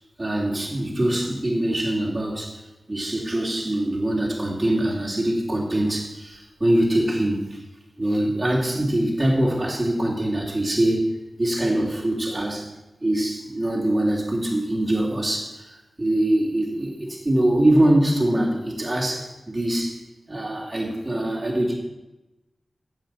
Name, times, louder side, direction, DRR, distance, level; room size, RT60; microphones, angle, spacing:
voice 1, 0.2-7.6 8.0-11.1 11.4-12.7 13.0-20.0 20.3-21.7, right 1 dB, 35° right, -3 dB, 3.1 m, -23 dB
8.0 x 7.7 x 7.4 m, 1.0 s
cardioid pair, 45°, 0 cm